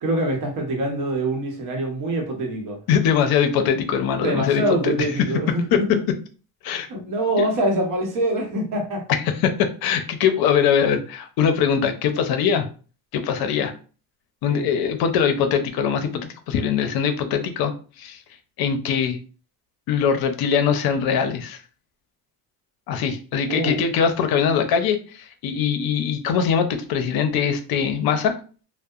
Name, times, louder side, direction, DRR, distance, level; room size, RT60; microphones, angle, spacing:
voice 1, 0.0-2.8 4.2-5.9 6.9-9.0 14.5-14.7 23.5-23.8, right 1 dB, 55° right, 1 dB, 0.9 m, -24 dB
voice 2, 2.9-5.1 6.6-6.9 9.3-9.5 9.8-12.7 13.1-13.7 14.4-18.2 18.6-19.2 19.9-21.6 22.9-28.3, left 7 dB, 65° left, 7 dB, 0.5 m, -22 dB
2.7 x 2.0 x 2.3 m, 0.37 s
cardioid pair, 150°, 39 cm